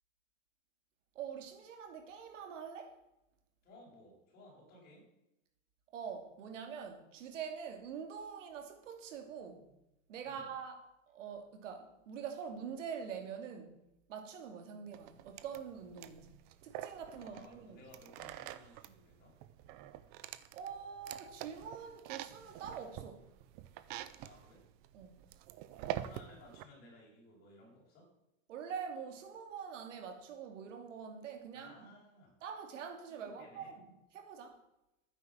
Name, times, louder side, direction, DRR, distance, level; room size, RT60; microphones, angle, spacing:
voice 1, 1.1-2.9 5.9-9.7 10.1-10.8 11.1-13.8 14.1-17.8 20.5-23.2 24.9-25.2 28.5-31.9 32.4-34.6, right 7 dB, 70° right, 2.8 m, -45 dB
voice 2, 3.6-5.1 10.2-10.5 17.1-19.4 24.2-24.7 25.8-28.1 31.5-32.4 33.1-33.7, left 1 dB, 25° left, 6.9 m, -58 dB
sound 1, 14.9-26.6, right 13 dB, 25° right, 0.6 m, -46 dB
12.5 x 9.8 x 7.4 m
supercardioid pair, 155°, 39 cm